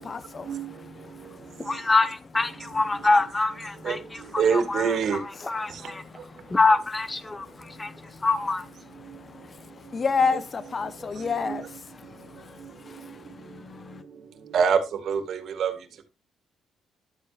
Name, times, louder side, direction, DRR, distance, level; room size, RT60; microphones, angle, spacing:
voice 1, 0.0-1.7 5.7-6.5 7.3-8.2 9.0-14.0, left 5 dB, 40° left, 0.9 m, -32 dB
voice 2, 1.6-6.0 6.5-7.9 8.2-8.7, left 3 dB, 20° left, 1.1 m, -25 dB
voice 3, 3.8-5.2 10.3-10.4 11.2-11.7 14.5-15.7, right 6 dB, 65° right, 1.9 m, -26 dB
12.0 x 8.3 x 2.5 m
cardioid pair, 90°, 0 cm